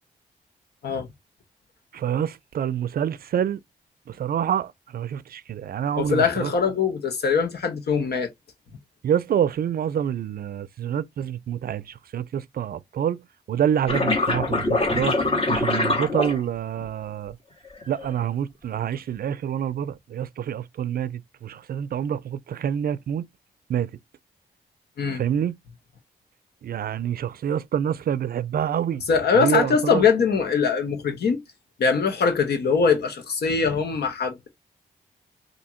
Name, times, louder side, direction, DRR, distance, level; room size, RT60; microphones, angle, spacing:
voice 1, 1.9-3.6 4.1-6.5 9.0-13.2 13.5-15.2 15.5-17.4 17.9-23.2 23.7-23.9 25.1-25.5 26.6-29.0 29.3-30.1, right 9 dB, 65° right, 0.4 m, -27 dB
voice 2, 6.0-8.3 25.0-25.2 29.1-31.4 31.8-34.5, left 5 dB, 75° left, 1.2 m, -22 dB
sound 1, 13.9-16.9 17.7-18.2, left 2 dB, 35° left, 1.7 m, -23 dB
3.5 x 2.7 x 4.3 m
cardioid pair, 60°, 17 cm